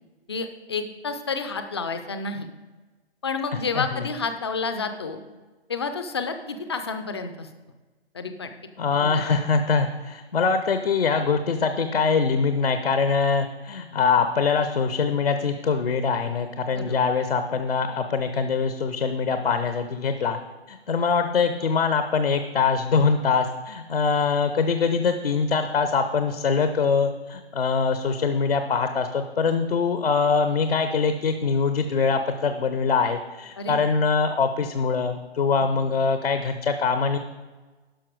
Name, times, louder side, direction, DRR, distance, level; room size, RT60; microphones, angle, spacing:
voice 1, 0.3-2.5 3.2-5.2 5.7-7.5 8.1-8.5 9.0-9.4 16.7-17.0 33.6-33.9, left 4 dB, 25° left, 8 dB, 0.5 m, -30 dB
voice 2, 8.8-20.4 20.7-37.2, left 5 dB, 60° left, 9 dB, 0.7 m, -23 dB
11.5 x 5.8 x 4.6 m, 1.3 s
figure-of-eight pair, 135°, 33 cm